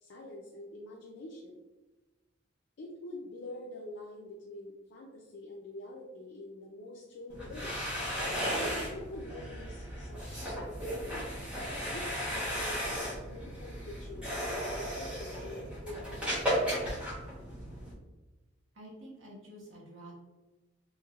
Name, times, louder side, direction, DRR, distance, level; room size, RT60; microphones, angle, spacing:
voice 1, 0.0-1.6 2.8-7.8 8.4-11.3 11.9-12.3 12.5-16.7, left 1 dB, 65° left, -1 dB, 0.4 m, -46 dB
sound 1, 7.3-17.9, equal, 5° right, 0.9 m, -35 dB
voice 2, 18.7-20.1, right 1 dB, 80° right, -3 dB, 1.0 m, -49 dB
3.2 x 2.6 x 2.3 m, 1.1 s
head